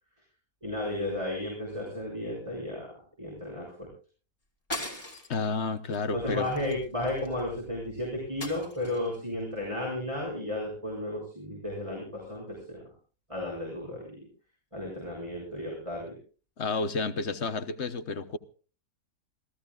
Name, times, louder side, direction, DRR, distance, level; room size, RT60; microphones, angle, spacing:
voice 1, 0.6-2.9 3.2-3.9 6.1-12.8 13.3-14.2 14.7-16.2, left 1 dB, 20° right, 6.7 m, -33 dB
sound 1, 4.7-5.4 5.9-6.1 6.4-7.4 8.4-9.2, left 1 dB, 25° left, 3.0 m, -39 dB
voice 2, 5.3-6.5 16.6-18.4, left 4 dB, 50° left, 1.2 m, -31 dB
28.0 x 16.5 x 2.4 m
omnidirectional pair, 1.6 m